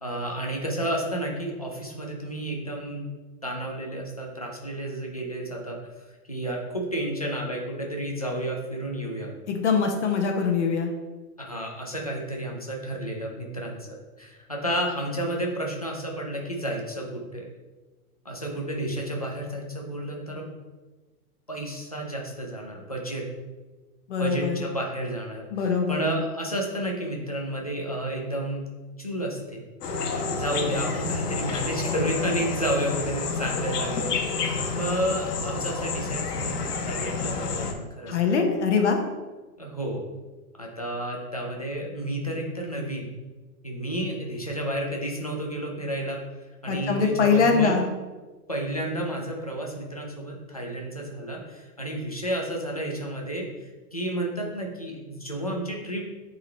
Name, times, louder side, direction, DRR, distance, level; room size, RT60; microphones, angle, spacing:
voice 1, 0.0-3.0 3.4-5.8 6.3-9.3 11.4-13.8 14.2-17.5 18.2-20.5 21.5-23.3 24.2-28.7 29.0-29.6 30.1-38.2 39.6-40.0 40.6-43.1 43.6-46.2 46.6-47.8 48.5-56.1, right 1 dB, 25° left, -1 dB, 0.4 m, -31 dB
voice 2, 9.5-10.9 24.1-24.6 25.5-26.0 38.1-39.0 46.7-47.9, left 5 dB, 50° left, 3 dB, 0.9 m, -23 dB
sound 1, 29.8-37.7, left 4 dB, 85° left, 1.2 m, -29 dB
8.4 x 3.9 x 3.1 m, 1.2 s
hypercardioid pair, 175°, 46 cm